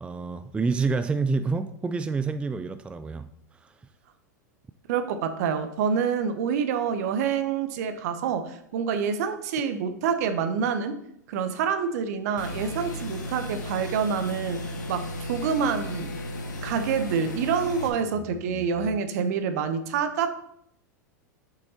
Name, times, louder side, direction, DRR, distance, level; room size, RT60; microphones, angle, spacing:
voice 1, 0.0-3.3 3.6-3.7 18.2-18.3 18.5-18.6, right 4 dB, 10° right, 0.3 m, -28 dB
voice 2, 4.9-11.0 11.3-16.1 16.6-20.3, right 6 dB, 60° right, 0.9 m, -27 dB
sound 1, 12.4-17.9, left 1 dB, 80° left, 1.3 m, -35 dB
7.2 x 5.3 x 4.3 m
hypercardioid pair, 95°, 10 cm